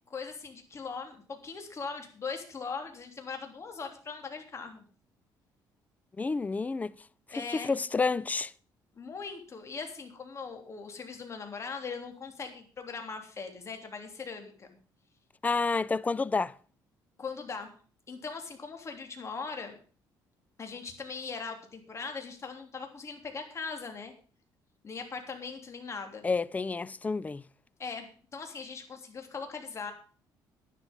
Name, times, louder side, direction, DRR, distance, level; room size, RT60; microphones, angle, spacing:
voice 1, 0.1-4.8 7.3-7.7 8.9-14.8 17.2-17.7 18.1-19.8 20.6-24.1 24.8-26.3 27.8-29.9, left 5 dB, 35° left, 3.3 m, -40 dB
voice 2, 6.2-6.9 7.5-8.5 15.4-16.5 26.2-27.4, left 4 dB, 20° left, 0.5 m, -29 dB
11.0 x 11.0 x 5.4 m
cardioid pair, 105°, 8 cm